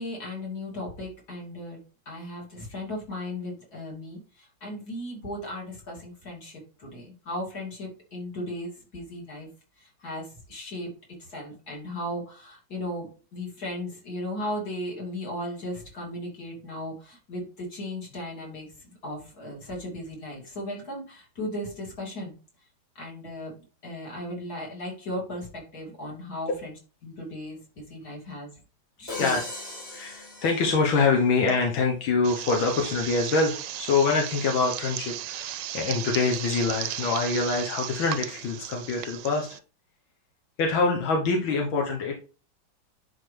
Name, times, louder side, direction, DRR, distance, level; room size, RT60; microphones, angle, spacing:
voice 1, 0.0-9.5 9.8-10.9 11.2-22.3 22.9-23.5 23.8-26.7 27.0-28.5 29.0-29.3, left 1 dB, 50° left, -1 dB, 3.2 m, -36 dB
Crash cymbal, 29.1-31.3, left 2 dB, 25° left, 2.3 m, -39 dB
voice 2, 29.9-39.5 40.6-42.1, left 4 dB, 85° left, 1 dB, 1.9 m, -25 dB
sound 1, 32.2-39.6, right 13 dB, 75° right, 1.1 m, -35 dB
10.5 x 4.4 x 3.3 m, 0.36 s
omnidirectional pair, 2.1 m